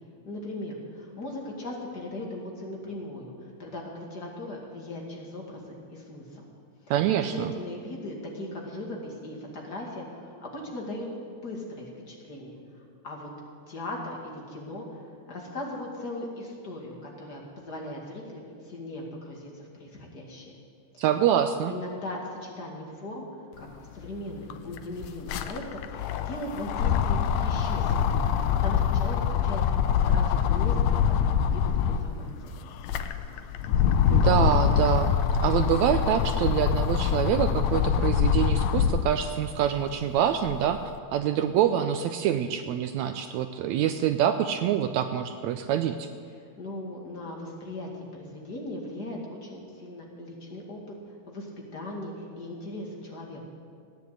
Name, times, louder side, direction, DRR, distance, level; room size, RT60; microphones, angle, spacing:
voice 1, 0.2-3.3 3.6-6.4 7.3-12.6 13.0-13.3 13.7-15.0 15.3-20.5 20.9-21.0 21.7-23.2 23.6-23.7 23.9-29.6 30.1-31.2 31.4-32.5 46.6-50.8 51.3-53.4, left 1 dB, 35° left, -1 dB, 2.3 m, -38 dB
voice 2, 6.9-7.5 21.0-21.7 34.1-35.1 35.4-40.8 41.1-46.1, right 10 dB, 80° right, 8 dB, 1.7 m, -25 dB
sound 1, 24.0-24.1 24.3-32.1 32.6-39.1 39.6-40.8, left 8 dB, 75° left, 1.7 m, -24 dB
16.0 x 9.7 x 8.0 m, 2.2 s
omnidirectional pair, 3.6 m